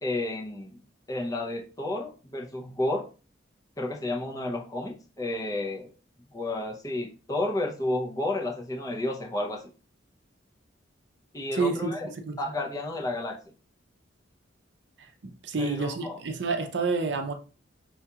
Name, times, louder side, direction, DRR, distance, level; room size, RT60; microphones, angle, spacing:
voice 1, 0.0-0.8 1.1-3.0 3.8-5.9 6.3-9.7 11.3-12.1 12.4-13.4 15.6-16.2, left 2 dB, 20° left, 0.6 m, -31 dB
voice 2, 11.5-11.9 12.3-12.4 15.0-17.3, right 4 dB, 60° right, 0.5 m, -29 dB
5.6 x 2.3 x 2.8 m
head